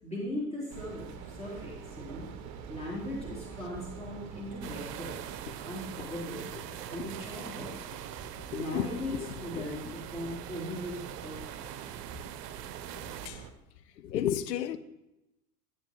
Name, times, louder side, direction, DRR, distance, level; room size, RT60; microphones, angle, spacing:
voice 1, 0.0-2.3 2.7-7.8 8.5-9.1 9.4-11.6, left 1 dB, 15° left, 3.5 m, -39 dB
sound 1, 0.7-13.5, right 7 dB, 40° right, 0.8 m, -45 dB
sound 2, 4.6-13.3, right 12 dB, 70° right, 0.6 m, -44 dB
voice 2, 8.5-8.9 9.1-9.7 13.2-13.4 14.0-14.8, left 10 dB, 80° left, 0.7 m, -33 dB
12.0 x 8.0 x 3.2 m
figure-of-eight pair, 90°, 49 cm